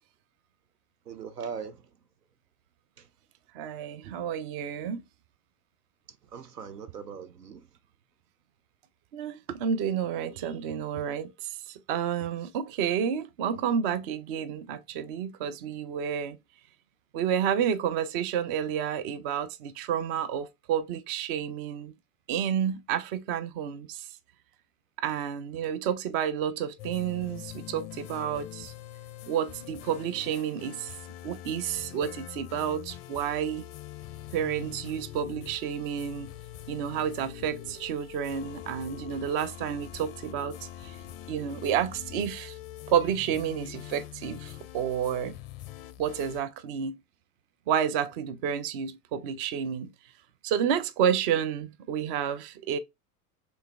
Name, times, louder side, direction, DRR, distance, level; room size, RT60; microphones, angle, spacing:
voice 1, 1.0-2.0 3.0-3.1 6.1-7.8 25.5-25.7, right 6 dB, 80° right, 0.7 m, -41 dB
voice 2, 3.5-5.0 9.1-16.4 17.1-21.9 22.3-24.1 25.0-28.7 29.3-30.9 31.2-33.6 34.3-36.3 36.7-41.0 41.3-42.6 42.9-45.4 46.0-47.0 47.7-49.9 50.4-52.8, right 8 dB, 35° right, 0.4 m, -30 dB
sound 1, 26.8-46.4, left 13 dB, 40° left, 0.4 m, -44 dB
3.2 x 3.1 x 3.4 m
figure-of-eight pair, 80°, 47 cm